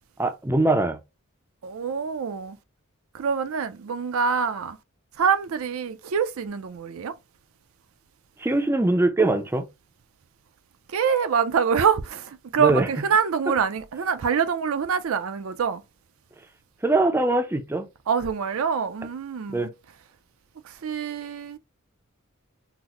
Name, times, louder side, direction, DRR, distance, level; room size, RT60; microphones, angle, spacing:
voice 1, 0.2-1.0 8.4-9.7 12.6-12.9 16.8-17.9 19.5-19.7, right 2 dB, 10° right, 0.4 m, -22 dB
voice 2, 1.6-2.6 3.1-4.8 5.2-7.1 10.9-15.8 18.1-19.7 20.8-21.6, right 6 dB, 70° right, 0.4 m, -25 dB
3.9 x 2.0 x 2.9 m
head